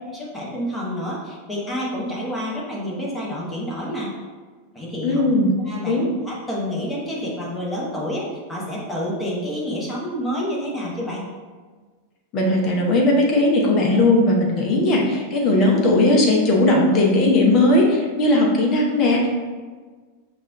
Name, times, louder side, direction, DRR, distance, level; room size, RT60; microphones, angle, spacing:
voice 1, 0.1-4.1 4.7-5.2 5.6-11.2, equal, 10° left, -5 dB, 1.2 m, -28 dB
voice 2, 5.0-5.5 5.9-6.1 12.3-19.3, left 2 dB, 35° left, -1 dB, 0.9 m, -18 dB
5.5 x 2.6 x 3.4 m, 1.4 s
figure-of-eight pair, 90°, 0 cm